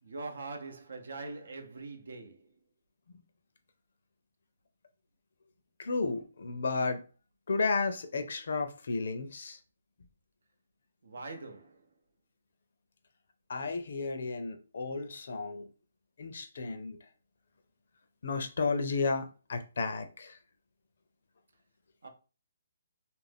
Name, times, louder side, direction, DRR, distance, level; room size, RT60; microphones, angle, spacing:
voice 1, 0.0-2.5 11.0-11.9 22.0-22.1, right 3 dB, 75° right, 0.7 m, -43 dB
voice 2, 5.8-7.0 7.5-9.6 13.5-15.7 16.2-17.0 18.2-20.4, left 4 dB, 65° left, 0.5 m, -33 dB
2.5 x 2.1 x 3.4 m
hypercardioid pair, 160°, 0 cm